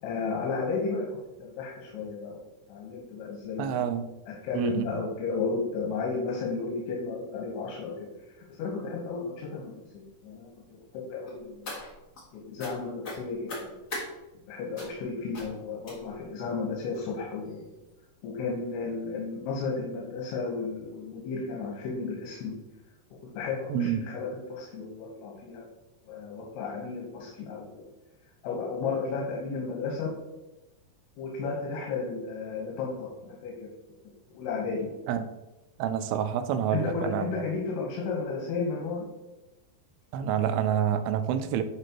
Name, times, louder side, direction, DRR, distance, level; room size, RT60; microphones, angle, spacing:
voice 1, 0.0-2.4 2.7-3.8 4.4-8.1 8.4-10.5 10.9-11.8 12.3-13.5 14.5-17.7 18.2-22.5 23.4-25.6 26.0-27.9 28.4-30.1 31.2-33.7 34.3-34.9 36.7-39.1, left 4 dB, 85° left, -3 dB, 3.3 m, -33 dB
voice 2, 3.6-4.0 4.6-5.0 23.7-24.0 35.1-35.3 35.8-37.3 40.1-41.6, right 9 dB, 85° right, 9 dB, 2.6 m, -28 dB
sound 1, 11.3-12.2 12.6-12.7 13.0-14.1 14.8-15.0 15.3-15.5 15.8-16.3 16.9-17.0 17.5-17.6 17.9-18.0, left 1 dB, 50° left, 1.1 m, -39 dB
11.0 x 4.2 x 3.0 m, 1.0 s
omnidirectional pair, 4.6 m